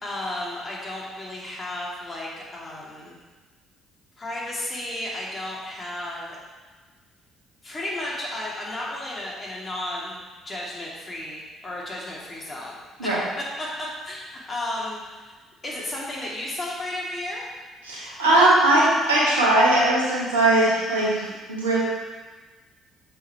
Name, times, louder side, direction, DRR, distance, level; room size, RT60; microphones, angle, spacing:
voice 1, 0.0-3.2 4.2-6.4 7.6-10.2 10.4-13.2 13.6-15.3 15.6-17.4, left 1 dB, 35° left, -4 dB, 2.6 m, -33 dB
voice 2, 17.8-21.8, right 1 dB, 80° right, -6 dB, 1.8 m, -20 dB
7.4 x 5.7 x 4.4 m, 1.3 s
figure-of-eight pair, 45°, 0 cm